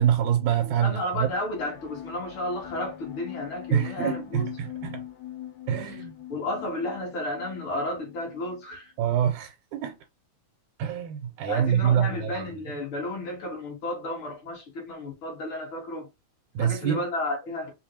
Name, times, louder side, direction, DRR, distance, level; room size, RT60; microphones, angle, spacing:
voice 1, 0.0-1.3 3.7-5.0 5.7-6.1 9.0-10.0 10.8-12.6 16.6-17.0, right 9 dB, 90° right, 2.0 m, -25 dB
voice 2, 0.6-4.5 5.8-5.9 6.3-8.9 11.5-16.1 16.6-17.7, left 1 dB, 50° left, 2.1 m, -32 dB
sound 1, 1.2-8.8, left 12 dB, 80° left, 2.5 m, -41 dB
5.2 x 2.4 x 2.8 m
omnidirectional pair, 3.3 m